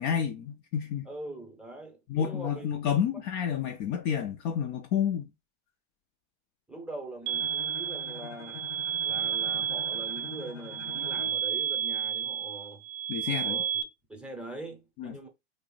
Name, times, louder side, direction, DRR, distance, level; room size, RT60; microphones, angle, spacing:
voice 1, 0.0-1.1 2.1-5.3 13.1-13.6 15.0-15.1, left 8 dB, 35° left, 0.4 m, -30 dB
voice 2, 1.0-2.7 6.7-8.7 9.0-12.9 13.3-13.7 14.1-15.3, right 2 dB, 5° right, 0.7 m, -43 dB
Bowed string instrument, 7.2-11.5, left 8 dB, 80° left, 0.9 m, -46 dB
sound 1, 7.3-13.8, right 9 dB, 60° right, 0.5 m, -31 dB
2.5 x 2.0 x 3.7 m
hypercardioid pair, 105°, 35 cm